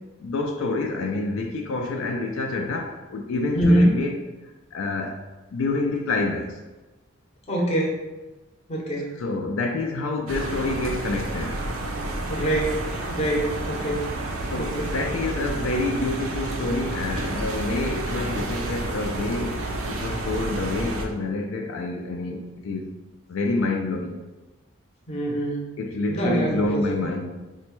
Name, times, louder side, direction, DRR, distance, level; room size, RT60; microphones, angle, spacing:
voice 1, 0.2-4.2 4.7-5.2 5.5-6.6 9.2-11.6 14.4-22.9 23.3-24.2 25.8-27.5, left 2 dB, 80° left, 0.3 m, -28 dB
voice 2, 3.5-4.0 7.5-8.0 8.7-9.1 12.3-12.8 13.1-14.1 14.5-14.9 25.1-25.6 26.1-27.1, right 1 dB, 30° left, 0.6 m, -24 dB
sound 1, 10.3-21.1, right 1 dB, 85° right, 0.5 m, -30 dB
4.0 x 2.2 x 3.0 m
head